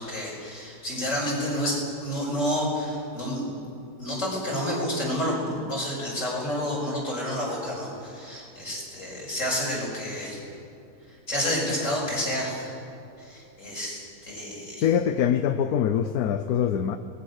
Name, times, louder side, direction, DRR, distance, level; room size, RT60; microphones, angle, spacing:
voice 1, 0.0-3.4 4.0-10.4 11.3-12.7 13.2-14.8, equal, 50° left, -3 dB, 6.0 m, -29 dB
voice 2, 14.8-17.0, left 9 dB, 70° left, 10 dB, 1.2 m, -23 dB
25.5 x 20.0 x 6.6 m, 2.7 s
omnidirectional pair, 1.7 m